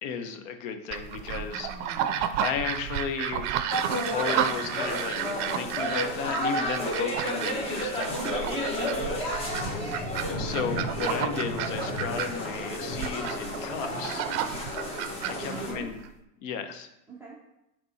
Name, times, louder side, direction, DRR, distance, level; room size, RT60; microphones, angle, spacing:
voice 1, 0.0-1.7 2.4-3.5 4.1-5.2 5.5-9.1 10.4-14.2 15.3-16.0 16.4-16.9, left 6 dB, 55° left, 7 dB, 0.9 m, -34 dB
sound 1, 0.9-16.1, right 10 dB, 50° right, 0.6 m, -32 dB
voice 2, 1.3-2.3 9.5-10.0 15.2-15.9 17.1-17.4, right 3 dB, 5° right, -6 dB, 0.4 m, -43 dB
sound 2, 3.7-15.7, left 1 dB, 15° left, 1.2 m, -32 dB
8.9 x 3.5 x 4.1 m, 0.88 s
supercardioid pair, 160°, 45 cm